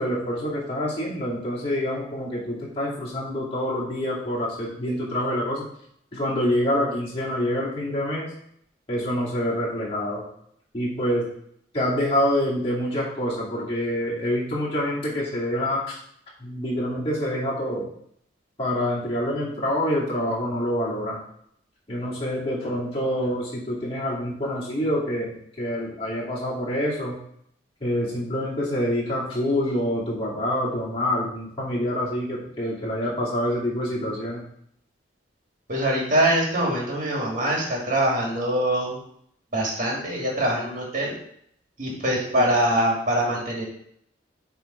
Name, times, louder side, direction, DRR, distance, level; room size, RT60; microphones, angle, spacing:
voice 1, 0.0-5.7 6.1-8.3 8.9-10.2 10.7-11.3 11.7-16.0 16.4-17.9 18.6-21.2 21.9-27.2 27.8-34.4 42.3-42.5, equal, 30° left, -7 dB, 2.4 m, -26 dB
voice 2, 35.7-39.0 39.5-41.2 41.8-43.6, right 1 dB, 40° right, -2 dB, 1.9 m, -23 dB
7.0 x 3.5 x 5.0 m, 0.68 s
head